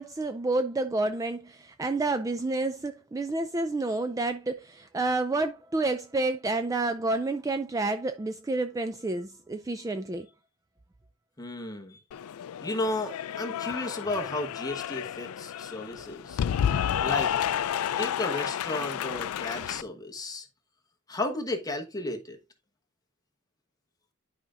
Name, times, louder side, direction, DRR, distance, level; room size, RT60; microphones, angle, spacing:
voice 1, 0.0-10.3 16.4-16.5, right 2 dB, 15° right, 0.3 m, -29 dB
voice 2, 11.4-12.0 12.6-16.4 17.0-17.3 18.0-20.5 21.1-22.4, left 2 dB, 15° left, 1.1 m, -33 dB
Cheering / Applause, 12.1-19.8, left 9 dB, 75° left, 0.3 m, -31 dB
11.0 x 5.0 x 2.5 m
head